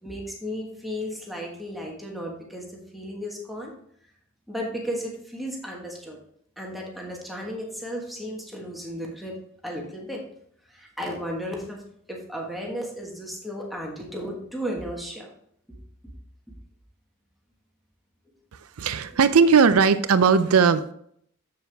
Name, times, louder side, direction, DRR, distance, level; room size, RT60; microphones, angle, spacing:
voice 1, 0.0-3.7 4.5-6.2 6.6-9.4 9.6-10.2 10.7-11.8 12.1-15.3 15.7-15.8, equal, ahead, -2 dB, 1.4 m, -34 dB
voice 2, 18.8-20.9, right 5 dB, 85° right, 11 dB, 0.5 m, -18 dB
7.6 x 7.0 x 3.4 m, 0.67 s
head